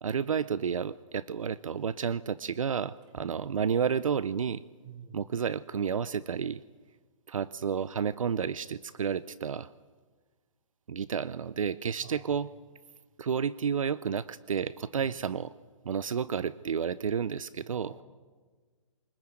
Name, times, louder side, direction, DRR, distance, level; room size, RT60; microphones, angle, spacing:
voice 1, 0.0-4.6 5.1-6.6 7.3-9.7 10.9-12.5 13.2-15.5 15.8-17.9, right 7 dB, 75° right, 18 dB, 0.7 m, -31 dB
voice 2, 4.8-5.2 12.0-12.3 14.9-15.2 17.7-18.0, right 6 dB, 25° right, 4 dB, 4.4 m, -49 dB
24.0 x 21.5 x 9.0 m, 1.4 s
hypercardioid pair, 140°, 17 cm